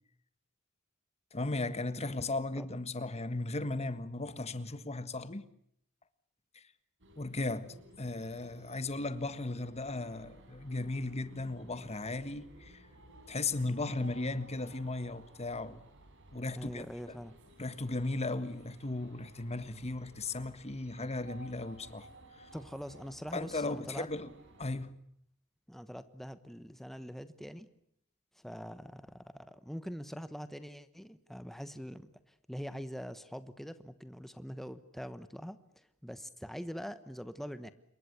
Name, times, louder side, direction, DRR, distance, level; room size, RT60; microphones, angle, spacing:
voice 1, 1.3-5.4 7.2-12.8 13.3-15.8 16.3-16.9 17.6-22.1 22.4-22.5 23.3-24.3 24.6-25.0, left 2 dB, 30° left, 1.5 m, -36 dB
sound 1, 7.0-24.7, right 1 dB, 55° right, 6.1 m, -56 dB
voice 2, 16.6-17.4 22.5-24.1 25.7-27.7 28.3-37.7, equal, ahead, 1.1 m, -44 dB
27.5 x 23.0 x 8.2 m
head